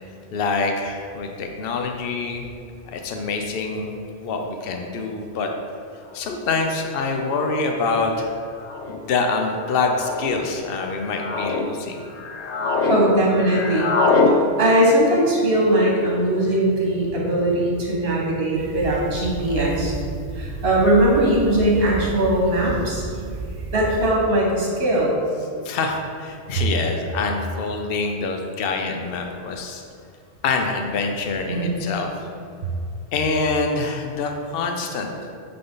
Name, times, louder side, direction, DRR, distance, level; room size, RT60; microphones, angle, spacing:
voice 1, 0.3-2.4 2.9-3.9 4.2-5.5 6.1-8.3 8.9-12.0 25.4-29.8 30.4-32.1 33.1-35.1, left 4 dB, 65° left, 3 dB, 0.8 m, -25 dB
sound 1, 6.3-6.4 7.4-7.7 8.6-9.0 9.9-10.3 10.9-11.6 12.1-13.0 13.2-14.3, left 4 dB, 90° left, 0.9 m, -23 dB
voice 2, 12.6-13.9 14.3-19.9 20.3-23.3 23.7-25.2 31.5-31.8, right 1 dB, 60° right, -3 dB, 1.6 m, -20 dB
sound 2, 18.6-24.1, right 3 dB, 75° right, 1.0 m, -32 dB
8.6 x 4.0 x 3.9 m, 2.4 s
omnidirectional pair, 1.1 m